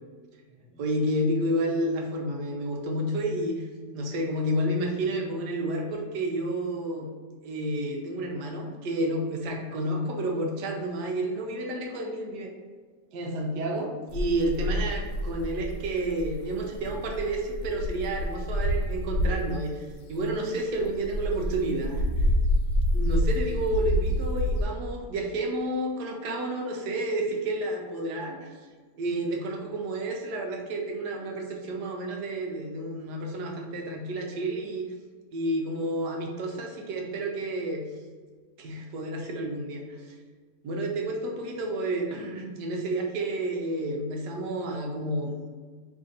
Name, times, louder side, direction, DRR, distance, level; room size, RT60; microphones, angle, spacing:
voice 1, 0.7-3.7 3.9-7.1 7.4-12.5 13.1-22.3 22.9-28.6 29.0-34.9 35.3-37.8 38.6-40.2 40.6-45.3, right 1 dB, 80° right, 1 dB, 1.2 m, -30 dB
sound 1, 14.1-19.6 20.1-24.6, equal, 80° left, 1.3 m, -28 dB
3.3 x 2.6 x 3.8 m, 1.5 s
omnidirectional pair, 1.8 m